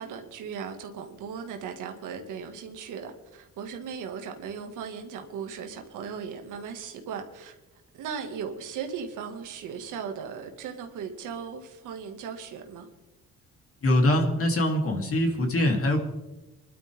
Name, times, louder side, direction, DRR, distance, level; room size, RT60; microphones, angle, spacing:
voice 1, 0.0-7.6 8.0-12.9, right 6 dB, 90° right, 4 dB, 2.1 m, -37 dB
voice 2, 13.8-16.0, left 1 dB, 45° left, 2 dB, 3.3 m, -23 dB
25.0 x 12.0 x 3.7 m, 1.0 s
cardioid pair, 90°, 30 cm